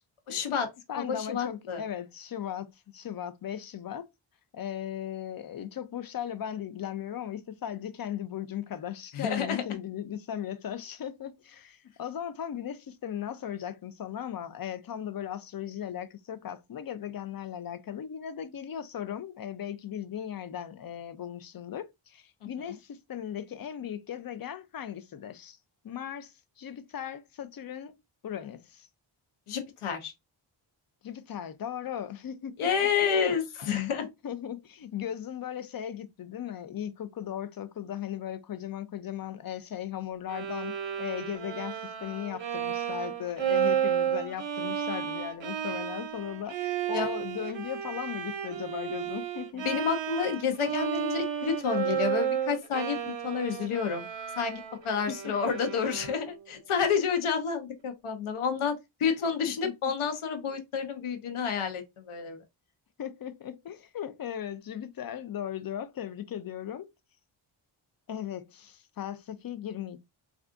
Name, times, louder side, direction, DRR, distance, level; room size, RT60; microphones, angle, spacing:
voice 1, 0.3-0.7 1.0-1.8 9.1-9.6 22.6-22.7 29.5-30.1 32.6-34.1 46.9-47.1 49.6-54.0 54.4-62.4, left 6 dB, 90° left, 0.7 m, -29 dB
voice 2, 0.9-4.1 4.5-25.6 25.8-28.0 28.2-28.9 31.0-33.4 34.0-49.7 55.1-55.4 59.2-59.9 63.0-66.9 68.1-70.0, left 10 dB, 50° left, 0.5 m, -37 dB
Bowed string instrument, 40.3-56.4, right 9 dB, 65° right, 0.7 m, -32 dB
3.5 x 2.4 x 2.5 m
wide cardioid pair, 95°, 49 cm